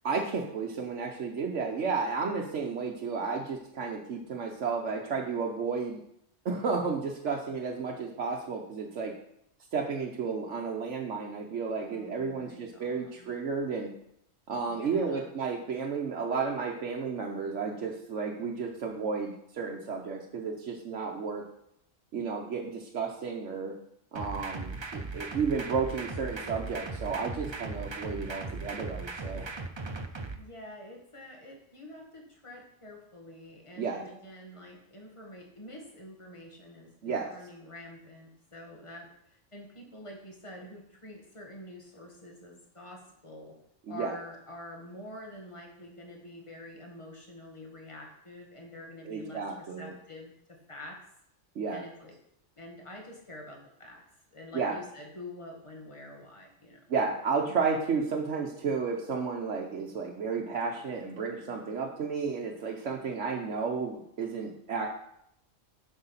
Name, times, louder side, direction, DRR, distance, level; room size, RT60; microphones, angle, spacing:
voice 1, 0.0-6.0 6.4-9.1 9.7-13.9 14.5-21.4 22.1-23.7 24.1-29.5 33.8-34.0 37.0-37.3 43.9-44.2 49.1-50.0 51.6-51.9 54.5-54.8 56.9-64.9, right 5 dB, 70° right, -1 dB, 1.2 m, -32 dB
voice 2, 11.8-13.3 14.7-15.3 30.4-43.6 43.9-51.1 51.7-52.2 52.6-54.0 54.3-56.9 57.5-57.6, left 1 dB, 25° left, 0 dB, 1.7 m, -47 dB
sound 1, 24.2-30.4, right 3 dB, 30° right, 0.5 m, -38 dB
7.8 x 6.2 x 5.7 m, 0.75 s
omnidirectional pair, 1.3 m